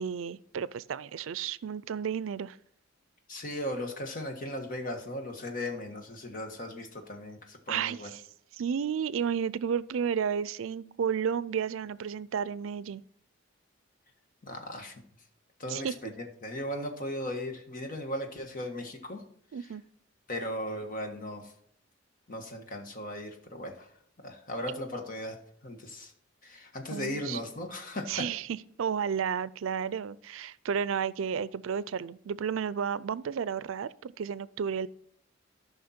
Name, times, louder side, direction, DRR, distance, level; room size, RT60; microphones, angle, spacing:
voice 1, 0.0-2.6 7.7-8.2 8.6-13.0 15.7-15.9 19.5-19.8 26.9-27.4 28.1-28.5 28.8-34.9, right 7 dB, 85° right, 0.4 m, -32 dB
voice 2, 3.3-8.1 14.4-15.0 15.6-19.2 20.3-21.5 22.3-23.9 24.2-25.4 25.6-26.1 26.4-28.3, left 1 dB, 45° left, 1.6 m, -37 dB
13.0 x 5.7 x 4.4 m
head